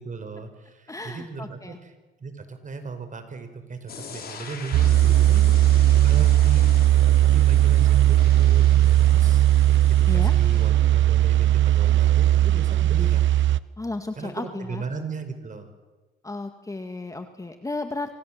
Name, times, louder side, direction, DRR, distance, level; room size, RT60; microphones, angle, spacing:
voice 1, 0.0-1.9 2.2-6.7 7.3-9.4 9.9-13.2 14.2-15.7, right 4 dB, 40° right, 9 dB, 5.1 m, -36 dB
voice 2, 0.9-1.8 10.1-10.3 13.8-14.8 16.2-18.1, left 2 dB, 15° left, 7 dB, 2.0 m, -33 dB
sound 1, 3.9-10.7, left 5 dB, 50° left, 5.7 m, -42 dB
sound 2, 4.7-13.6, right 13 dB, 70° right, 0.9 m, -18 dB
27.0 x 25.5 x 7.8 m, 1.2 s
cardioid pair, 90°, 20 cm